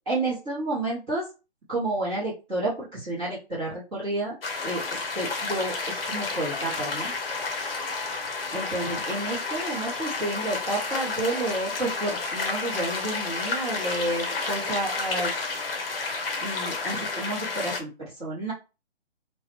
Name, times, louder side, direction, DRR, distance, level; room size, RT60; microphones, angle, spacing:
voice 1, 0.1-1.2 1.7-4.3 4.6-7.1 8.5-15.5 16.4-18.5, right 2 dB, 10° right, -13 dB, 0.6 m, -30 dB
sound 1, 4.4-17.8, left 3 dB, 55° left, 0.9 m, -31 dB
3.1 x 2.0 x 2.9 m, 0.30 s
figure-of-eight pair, 145°, 34 cm